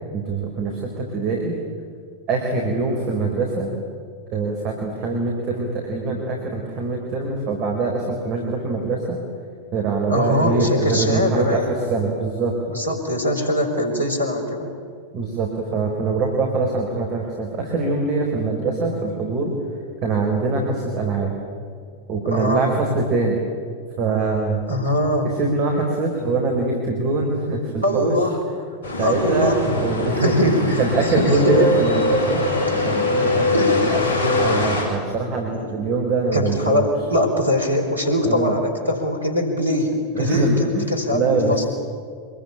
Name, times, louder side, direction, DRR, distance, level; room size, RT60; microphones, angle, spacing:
voice 1, 0.1-1.6 2.3-3.7 4.3-9.2 9.7-12.5 15.1-19.5 20.0-21.3 22.1-23.4 24.0-24.7 25.4-28.2 29.0-29.5 29.8-30.3 30.8-32.5 32.8-33.5 33.9-36.9 38.3-38.5 40.1-40.8 41.1-41.6, right 3 dB, 40° right, 1 dB, 4.4 m, -23 dB
voice 2, 10.1-11.7 12.7-14.7 22.3-22.7 24.7-25.3 27.8-28.4 29.0-29.7 30.1-31.6 32.7-32.8 33.5-33.8 35.5-35.7 36.3-41.6, left 1 dB, 85° right, 4 dB, 4.7 m, -22 dB
sound 1, 28.8-34.8, left 2 dB, 55° left, 7.2 m, -22 dB
25.5 x 22.0 x 9.0 m, 2.1 s
figure-of-eight pair, 90°, 0 cm